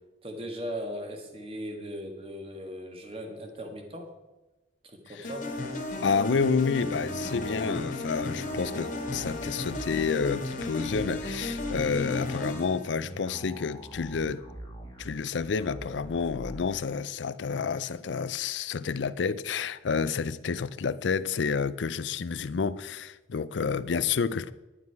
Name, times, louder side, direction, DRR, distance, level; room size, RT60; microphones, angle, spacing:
voice 1, 0.2-4.1 4.8-5.5, equal, 30° right, 1.6 m, -38 dB
sound 1, 5.2-12.9, left 2 dB, 45° left, 1.7 m, -34 dB
voice 2, 6.0-14.5 15.0-24.5, left 5 dB, 80° left, 0.5 m, -29 dB
sound 2, 7.0-16.6, equal, 20° left, 1.6 m, -43 dB
11.5 x 9.6 x 4.7 m
head